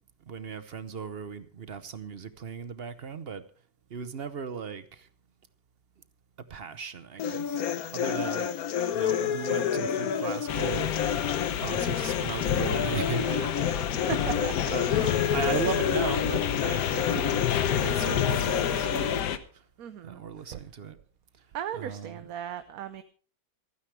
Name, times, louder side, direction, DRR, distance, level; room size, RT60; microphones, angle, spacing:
voice 1, 0.3-3.4 3.9-5.1 6.5-7.6 7.9-8.5 8.9-11.0 11.6-19.6 20.0-21.0 21.7-22.3, right 6 dB, 45° right, 12 dB, 0.9 m, -37 dB
sound 1, 7.2-19.2, left 8 dB, 60° left, 1.3 m, -30 dB
sound 2, 10.5-19.4, left 9 dB, 80° left, 1.5 m, -29 dB
voice 2, 14.1-14.5 19.8-20.2 20.5-20.6 21.5-23.0, right 10 dB, 65° right, 10 dB, 1.2 m, -36 dB
27.5 x 9.6 x 3.3 m, 0.40 s
omnidirectional pair, 1.8 m